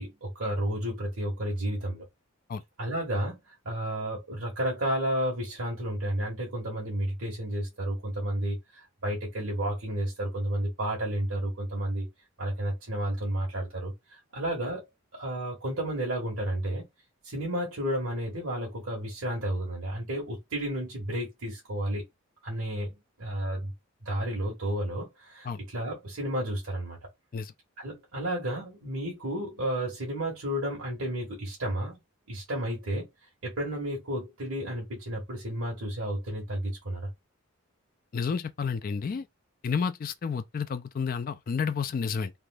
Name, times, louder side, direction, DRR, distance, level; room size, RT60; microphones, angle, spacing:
voice 1, 0.0-2.1 2.8-12.1 12.4-14.9 15.1-16.9 17.2-22.0 22.4-23.7 24.0-27.0 27.8-32.0 32.3-33.1 33.4-37.1, right 1 dB, 80° right, 1.4 m, -32 dB
voice 2, 38.1-39.3 39.6-42.3, left 5 dB, 40° left, 0.3 m, -30 dB
3.4 x 2.7 x 2.3 m
head